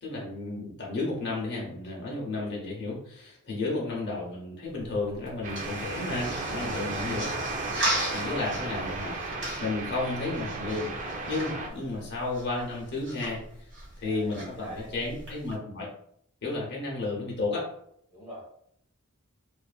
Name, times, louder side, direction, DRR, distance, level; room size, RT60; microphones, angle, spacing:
voice 1, 0.0-7.3 8.1-9.1 9.6-10.9 11.3-13.4 14.0-15.9 16.4-17.7, left 2 dB, 50° left, -3 dB, 0.7 m, -32 dB
sound 1, 4.6-15.5, right 1 dB, 60° right, 1.2 m, -38 dB
sound 2, 5.4-11.7, right 3 dB, 35° right, 0.3 m, -34 dB
voice 2, 7.7-8.4 11.4-11.8 14.0-14.9 18.1-18.4, equal, 15° right, -8 dB, 1.0 m, -45 dB
2.5 x 2.5 x 2.2 m, 0.70 s
head